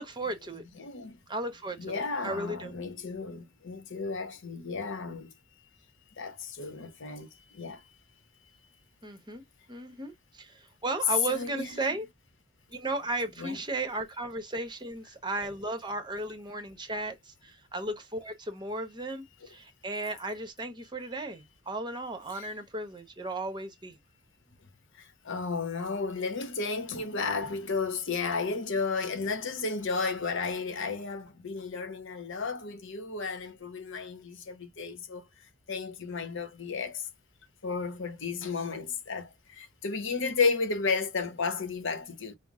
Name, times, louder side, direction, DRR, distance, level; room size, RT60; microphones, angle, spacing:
voice 1, 0.0-0.6 1.3-2.7 9.0-9.4 9.7-12.1 12.7-24.0, right 2 dB, 20° right, 0.9 m, -35 dB
voice 2, 0.8-1.2 1.8-5.3 6.2-7.8 11.3-11.9 13.4-13.6 22.3-22.5 25.0-35.3 35.7-37.1 37.6-42.3, left 4 dB, 60° left, 0.9 m, -33 dB
5.7 x 2.0 x 3.6 m
head